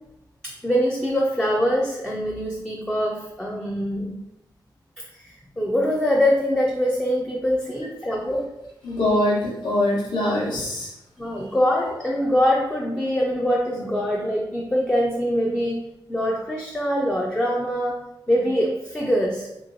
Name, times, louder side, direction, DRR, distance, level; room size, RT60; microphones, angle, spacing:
voice 1, 0.4-4.2 5.2-8.5 11.2-15.8 16.1-18.0 18.3-19.5, equal, 10° left, -2 dB, 0.3 m, -23 dB
voice 2, 8.8-10.9 11.3-11.6, left 1 dB, 75° left, -5 dB, 1.1 m, -23 dB
3.0 x 2.9 x 2.6 m, 0.85 s
wide cardioid pair, 165°, 8 cm